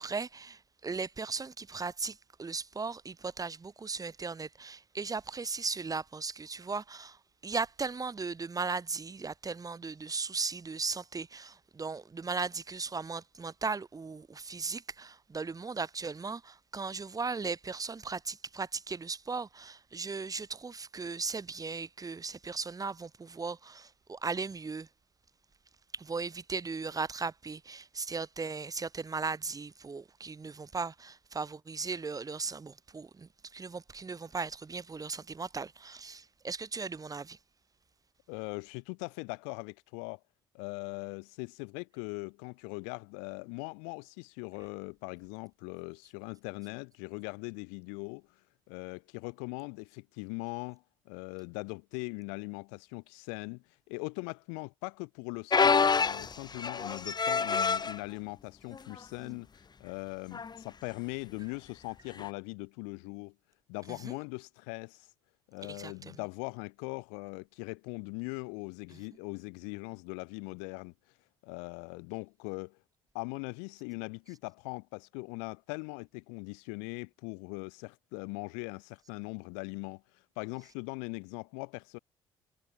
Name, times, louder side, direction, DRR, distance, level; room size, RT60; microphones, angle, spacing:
voice 1, 0.0-24.9 25.9-37.4 63.9-64.2 65.6-66.1 68.9-69.0, right 4 dB, 30° right, 6.9 m, -37 dB
voice 2, 38.3-40.2 40.5-48.2 48.7-59.5 59.8-63.3 63.7-65.1 65.5-70.9 71.4-72.8 73.1-80.0 80.4-82.0, left 40 dB or more, 70° left, 6.8 m, -40 dB
sound 1, 55.5-58.0 58.7-59.0 59.3-59.4 60.3-60.6 62.2-62.3, left 5 dB, 35° left, 6.0 m, -27 dB
figure-of-eight pair, 50°, 13 cm